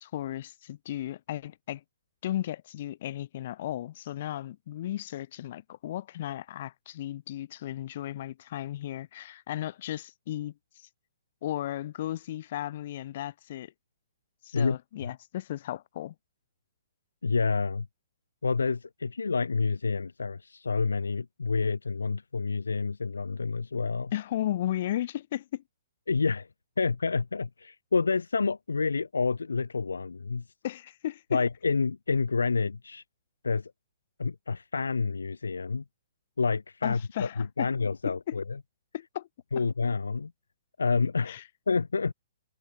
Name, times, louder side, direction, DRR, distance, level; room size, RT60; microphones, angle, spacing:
voice 1, 0.0-1.8 2.2-10.9 11.4-13.7 14.4-16.1 24.1-25.6 30.6-31.4 36.8-37.7 38.3-38.4 38.9-39.3 41.3-41.4, left 13 dB, 50° left, 0.9 m, -35 dB
voice 2, 17.2-17.9 18.4-24.1 26.1-26.5 26.8-30.4 31.3-33.0 33.4-33.7 34.2-35.8 36.4-38.6 39.5-40.3 40.8-41.4 41.7-42.1, left 4 dB, 75° left, 0.4 m, -28 dB
figure-of-eight pair, 120°, 0 cm